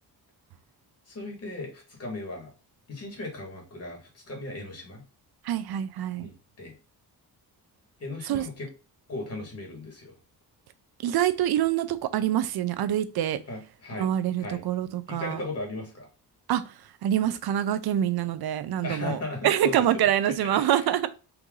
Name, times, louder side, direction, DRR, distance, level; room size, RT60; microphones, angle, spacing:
voice 1, 1.1-2.5 2.9-5.0 6.2-6.8 8.0-8.7 9.1-10.1 13.5-14.1 14.4-14.6 15.1-16.1 18.8-20.1 20.4-21.1, left 2 dB, 40° left, 1.9 m, -37 dB
voice 2, 5.4-6.3 8.2-8.5 11.0-13.4 14.0-15.4 16.5-21.1, right 11 dB, 75° right, 0.6 m, -26 dB
4.6 x 2.7 x 3.8 m
wide cardioid pair, 150°, 38 cm